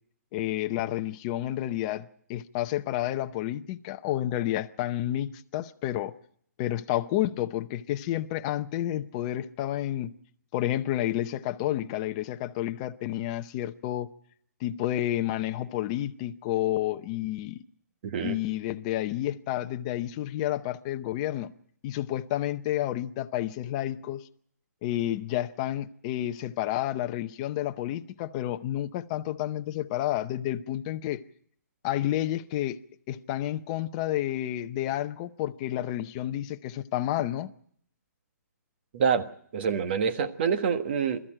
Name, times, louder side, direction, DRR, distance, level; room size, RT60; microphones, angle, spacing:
voice 1, 0.3-2.0 2.3-6.1 6.6-10.1 10.5-14.1 14.6-17.6 18.2-21.5 21.8-24.2 24.8-31.2 31.8-32.8 33.1-37.5, left 13 dB, 25° left, 0.7 m, -30 dB
voice 2, 18.0-18.4 38.9-39.2 39.5-41.2, right 6 dB, 40° right, 1.4 m, -26 dB
22.0 x 14.0 x 8.9 m
hypercardioid pair, 165°, 9 cm